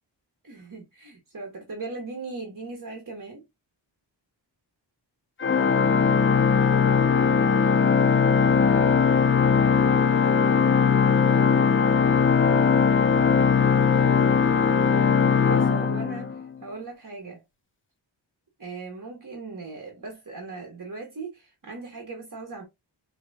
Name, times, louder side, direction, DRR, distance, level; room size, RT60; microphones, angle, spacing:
voice 1, 0.4-3.4 15.4-17.4 18.6-22.6, right 3 dB, 45° right, 1.3 m, -38 dB
Organ, 5.4-16.6, left 6 dB, 25° left, 0.6 m, -20 dB
4.9 x 3.2 x 2.3 m
wide cardioid pair, 80°, 46 cm